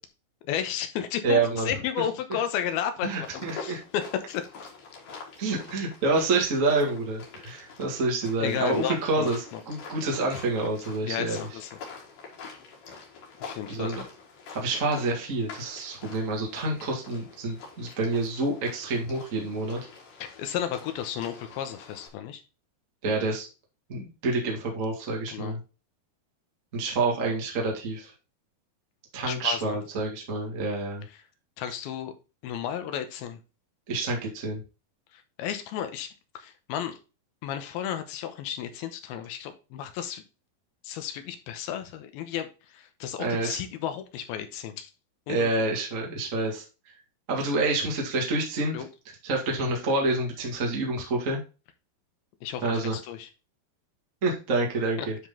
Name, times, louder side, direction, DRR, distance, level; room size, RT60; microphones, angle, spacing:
voice 1, 0.5-4.4 8.4-9.6 11.0-11.7 13.4-13.9 20.2-22.4 25.3-25.5 29.3-29.8 31.6-32.1 32.4-33.4 35.1-36.1 36.3-37.0 37.4-40.2 40.8-44.9 45.3-45.6 48.7-48.9 52.4-53.3 55.0-55.1, left 9 dB, 80° left, 8 dB, 2.6 m, -33 dB
voice 2, 1.2-1.7 3.0-3.8 5.4-11.4 13.7-14.0 14.5-19.8 23.0-23.5 23.9-25.6 26.7-28.1 29.1-31.0 33.9-34.6 43.2-43.6 45.3-46.6 47.3-48.8 49.2-51.4 52.6-53.0 54.2-55.1, right 2 dB, 40° right, -1 dB, 1.2 m, -28 dB
sound 1, 3.2-22.1, left 5 dB, 60° left, 3.2 m, -46 dB
10.0 x 3.8 x 3.7 m, 0.31 s
omnidirectional pair, 4.6 m